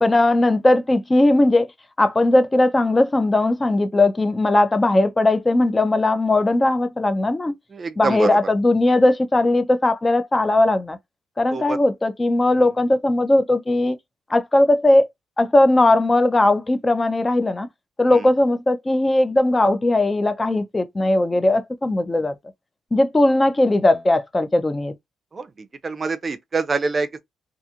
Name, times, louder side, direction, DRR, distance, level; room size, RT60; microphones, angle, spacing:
voice 1, 0.0-1.7 2.0-7.5 8.0-11.0 11.4-14.0 14.3-15.1 15.4-17.7 18.0-22.3 22.9-24.9, left 2 dB, 20° left, 0.4 m, -18 dB
voice 2, 7.7-8.3 11.5-11.8 18.1-18.3 25.3-25.5 25.8-27.2, right 4 dB, 35° right, 0.5 m, -25 dB
2.4 x 2.4 x 2.8 m
cardioid pair, 90°, 0 cm